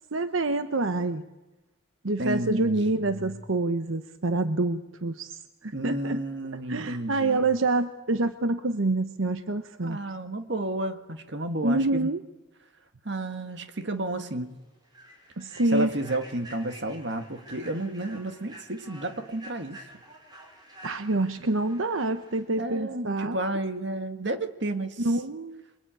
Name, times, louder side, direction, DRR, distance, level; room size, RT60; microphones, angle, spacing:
voice 1, 0.1-1.2 2.0-6.2 6.7-10.0 11.6-12.2 15.4-15.9 20.8-23.4 25.0-25.6, right 2 dB, 80° right, 9 dB, 1.0 m, -27 dB
voice 2, 2.2-3.3 5.7-7.4 9.8-12.1 13.0-14.5 15.7-19.8 22.6-25.1, right 1 dB, 60° right, 7 dB, 1.8 m, -31 dB
Human voice / Train, 13.6-13.7 14.1-14.3 14.8-22.4, right 1 dB, 20° right, 5.6 m, -49 dB
26.5 x 23.0 x 9.1 m, 1.1 s
head